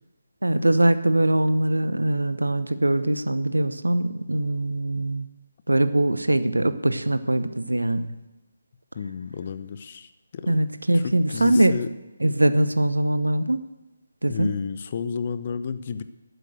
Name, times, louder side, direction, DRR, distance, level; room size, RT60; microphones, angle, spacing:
voice 1, 0.4-5.3 5.7-8.1 10.5-11.8 12.2-13.6 14.2-14.5, right 1 dB, 80° right, 12 dB, 0.9 m, -22 dB
voice 2, 8.9-10.6 10.9-11.9 14.3-16.0, left 6 dB, 35° left, 12 dB, 0.7 m, -32 dB
12.5 x 8.0 x 7.8 m, 1.0 s
figure-of-eight pair, 150°, 0 cm